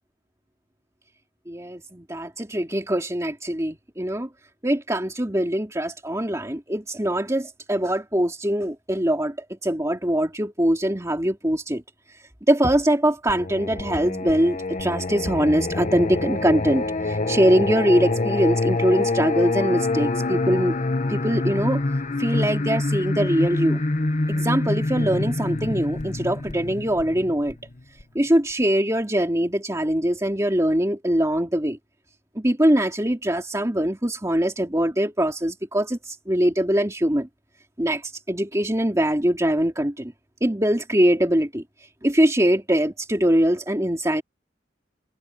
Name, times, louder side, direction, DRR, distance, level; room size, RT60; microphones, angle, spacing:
voice 1, 1.5-4.3 4.6-9.4 9.6-11.8 12.5-20.7 21.1-21.8 22.2-23.8 24.3-27.6 28.1-31.8 32.3-37.3 37.8-40.1 40.4-41.6 42.0-44.2, right 1 dB, 15° right, 2.6 m, -22 dB
Singing, 13.3-28.0, left 2 dB, 40° left, 1.1 m, -26 dB
head